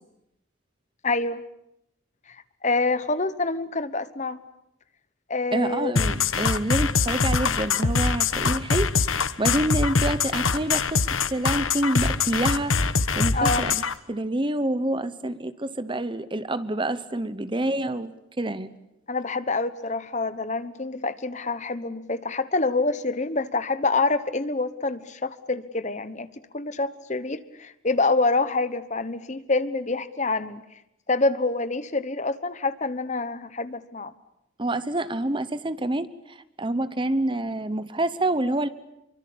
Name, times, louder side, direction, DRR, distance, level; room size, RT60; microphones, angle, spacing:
voice 1, 1.0-1.4 2.3-4.4 5.3-5.9 13.3-13.6 19.1-26.3 26.5-30.6 31.1-34.1, left 3 dB, 35° left, 13 dB, 1.1 m, -26 dB
voice 2, 5.5-12.8 13.1-13.8 14.1-18.7 34.6-38.7, right 1 dB, 25° right, 13 dB, 1.0 m, -27 dB
sound 1, 6.0-13.9, left 5 dB, 85° left, 1.2 m, -23 dB
26.0 x 24.5 x 8.6 m, 0.82 s
head